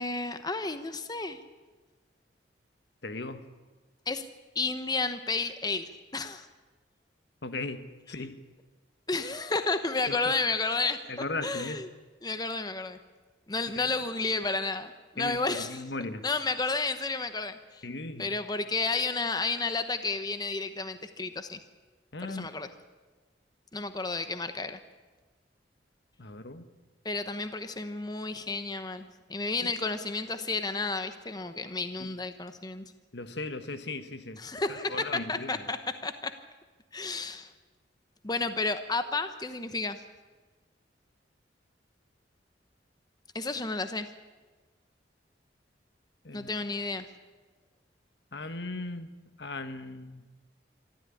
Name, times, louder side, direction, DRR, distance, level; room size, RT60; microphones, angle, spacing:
voice 1, 0.0-1.4 4.1-4.2 4.5-6.5 9.1-11.0 11.4-11.9 12.2-13.0 13.5-15.8 16.2-17.8 18.2-21.6 22.2-22.7 23.7-24.8 27.0-32.8 34.4-36.3 36.9-37.5 38.2-40.0 43.3-44.1 46.3-47.0, left 3 dB, 20° left, 9 dB, 0.9 m, -31 dB
voice 2, 3.0-3.4 7.4-8.4 10.1-10.4 11.1-11.8 13.7-13.9 15.2-16.2 17.8-18.3 22.1-22.5 26.2-26.6 29.6-29.7 32.0-32.1 33.1-34.4 34.7-35.6 46.2-46.5 48.3-49.1 49.4-50.2, left 2 dB, 65° left, 10 dB, 1.4 m, -37 dB
24.0 x 14.0 x 9.9 m, 1.3 s
head